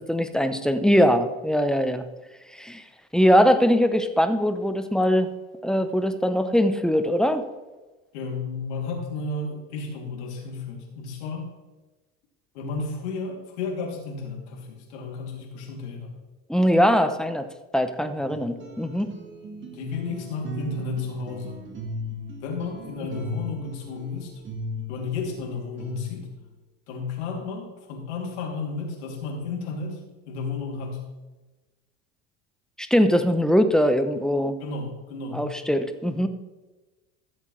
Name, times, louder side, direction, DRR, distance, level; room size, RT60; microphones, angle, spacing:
voice 1, 0.1-2.0 2.5-2.8 3.1-5.3 5.6-7.4 16.5-17.5 17.7-19.1 23.0-23.1 32.8-34.6 35.3-36.3, equal, ahead, 9 dB, 0.7 m, -21 dB
voice 2, 8.1-11.4 12.5-16.1 19.6-21.6 22.4-24.3 24.9-26.3 26.9-30.0 30.3-31.0 34.6-35.5, left 4 dB, 85° left, -1 dB, 2.9 m, -33 dB
sound 1, 18.2-26.4, equal, 35° right, 1.8 m, -37 dB
14.5 x 7.4 x 3.3 m, 1.2 s
supercardioid pair, 110°, 33 cm